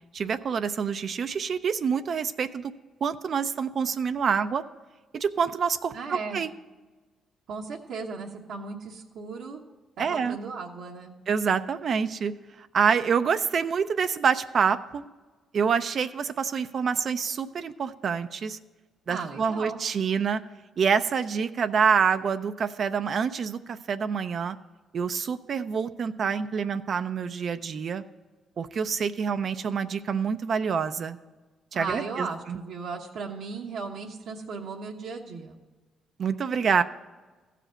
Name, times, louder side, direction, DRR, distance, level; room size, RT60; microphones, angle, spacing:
voice 1, 0.1-2.7 3.0-4.6 5.1-6.5 10.0-10.4 11.3-15.0 15.5-18.6 19.1-20.4 20.8-24.6 24.9-28.0 28.6-31.2 31.7-32.6 36.2-36.8, right 6 dB, 55° right, 10 dB, 0.4 m, -27 dB
voice 2, 5.9-6.4 7.5-9.6 10.1-11.2 19.1-19.8 31.7-35.6, right 4 dB, 75° right, 0 dB, 1.1 m, -36 dB
14.5 x 5.0 x 7.7 m, 1.3 s
cardioid pair, 90°, 0 cm